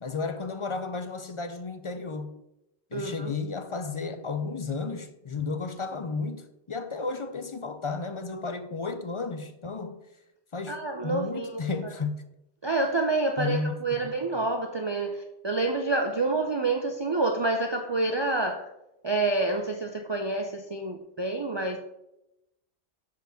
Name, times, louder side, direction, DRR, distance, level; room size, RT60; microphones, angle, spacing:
voice 1, 0.0-2.4 2.9-10.0 10.5-12.2 13.4-14.1, left 4 dB, 40° left, 0.4 m, -33 dB
voice 2, 2.9-3.3 10.7-11.6 12.6-18.7 19.0-21.8, right 2 dB, 30° right, 0.5 m, -28 dB
6.7 x 5.1 x 6.4 m
omnidirectional pair, 1.2 m